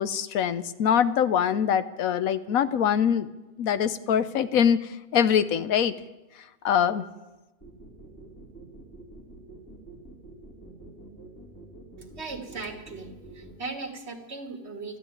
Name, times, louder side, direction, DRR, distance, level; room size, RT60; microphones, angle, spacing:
voice 1, 0.0-3.3 3.6-6.0 6.6-7.0, left 8 dB, 85° left, 13 dB, 1.2 m, -23 dB
sound 1, 7.6-13.5, right 2 dB, 15° left, 2.7 m, -46 dB
voice 2, 12.2-15.0, right 3 dB, 50° right, 3 dB, 2.2 m, -38 dB
13.0 x 12.0 x 8.9 m, 1.1 s
omnidirectional pair, 1.4 m